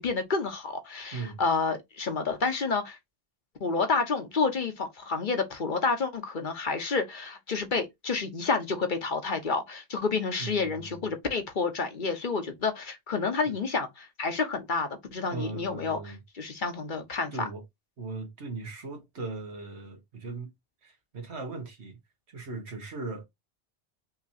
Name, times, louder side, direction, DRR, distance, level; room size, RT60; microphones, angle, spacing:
voice 1, 0.0-3.0 3.6-17.5, left 4 dB, 50° left, 1.0 m, -29 dB
voice 2, 10.4-11.1 13.4-13.5 15.3-16.2 17.3-17.6 18.0-20.5 20.8-22.0 22.3-23.2, right 4 dB, 90° right, 1.7 m, -38 dB
5.7 x 2.9 x 2.7 m
omnidirectional pair, 1.1 m